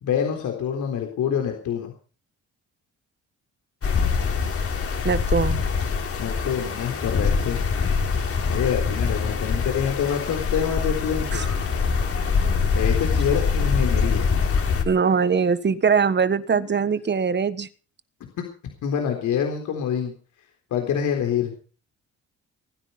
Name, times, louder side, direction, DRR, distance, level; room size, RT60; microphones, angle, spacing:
voice 1, 0.0-1.9 6.2-7.6 8.5-11.5 12.7-14.3 16.5-16.7 18.8-20.1 20.7-21.5, left 8 dB, 80° left, 3 dB, 3.9 m, -26 dB
sound 1, 3.8-14.8, left 5 dB, 50° left, 3.8 m, -24 dB
voice 2, 5.0-5.6 11.3-11.4 14.8-17.7, right 6 dB, 35° right, 14 dB, 1.4 m, -21 dB
20.5 x 10.0 x 5.6 m, 0.39 s
cardioid pair, 90°, 30 cm